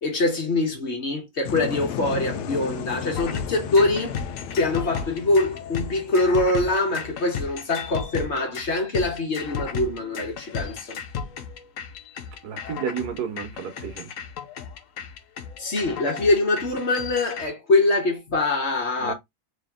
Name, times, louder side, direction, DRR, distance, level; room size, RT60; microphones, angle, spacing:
voice 1, 0.0-4.2 4.5-11.0 15.6-19.1, left 2 dB, 45° left, 1.3 m, -24 dB
sound 1, 1.5-7.3, left 8 dB, 85° left, 1.2 m, -35 dB
sound 2, 3.1-17.5, left 6 dB, 65° left, 0.9 m, -35 dB
voice 2, 12.4-14.1 19.0-19.1, right 8 dB, 75° right, 1.5 m, -31 dB
3.4 x 2.9 x 3.5 m
omnidirectional pair, 1.7 m